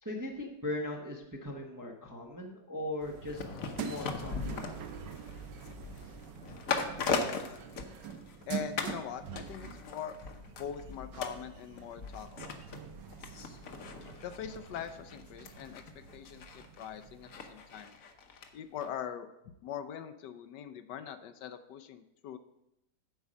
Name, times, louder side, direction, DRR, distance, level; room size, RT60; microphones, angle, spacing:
voice 1, 0.0-3.5 3.8-4.8, left 1 dB, 15° right, 0 dB, 0.6 m, -39 dB
sound 1, 3.0-17.8, right 7 dB, 80° right, 1.4 m, -46 dB
sound 2, 3.3-8.4 8.8-9.0 9.4-18.5 18.8-18.9, left 5 dB, 55° left, 1.2 m, -39 dB
voice 2, 8.5-10.2 10.6-12.6 14.2-17.9 18.5-19.3 19.6-22.4, left 8 dB, 75° left, 10 dB, 1.2 m, -42 dB
8.1 x 5.4 x 7.4 m, 0.86 s
omnidirectional pair, 1.9 m